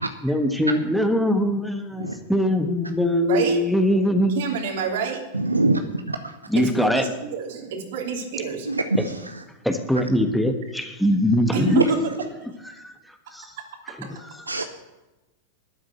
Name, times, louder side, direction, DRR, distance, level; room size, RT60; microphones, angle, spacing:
voice 1, 0.2-4.4 6.5-7.1 9.6-11.8 12.6-12.9 13.3-13.5 13.9-14.6, equal, ahead, 5 dB, 1.4 m, -22 dB
voice 2, 3.3-3.6 4.3-5.2 6.6-8.7 11.5-12.0, right 6 dB, 55° right, 3 dB, 3.0 m, -27 dB
voice 3, 5.3-5.8 6.1-6.4 8.7-9.4 11.8-11.9 14.5-14.6, right 2 dB, 80° right, 7 dB, 0.8 m, -24 dB
12.5 x 9.3 x 7.9 m, 1.1 s
figure-of-eight pair, 90°, 0 cm